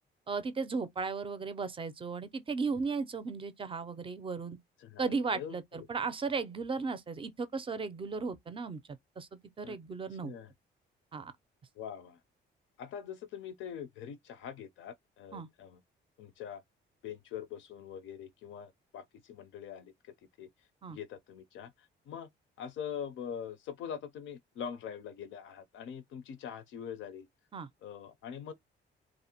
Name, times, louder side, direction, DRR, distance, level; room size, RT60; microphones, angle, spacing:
voice 1, 0.3-4.6 5.0-8.8 9.2-10.3 11.1-11.3 15.3-15.5 20.8-21.0 27.5-27.7, right 4 dB, 25° right, 0.4 m, -35 dB
voice 2, 4.8-5.6 9.6-9.8 10.2-10.5 11.8-12.2 12.8-15.8 16.2-16.6 17.0-19.9 20.4-20.5 20.9-21.7 22.1-22.3 22.6-27.3 27.8-28.5, left 8 dB, 75° left, 0.4 m, -43 dB
2.4 x 2.0 x 2.7 m
cardioid pair, 90°, 20 cm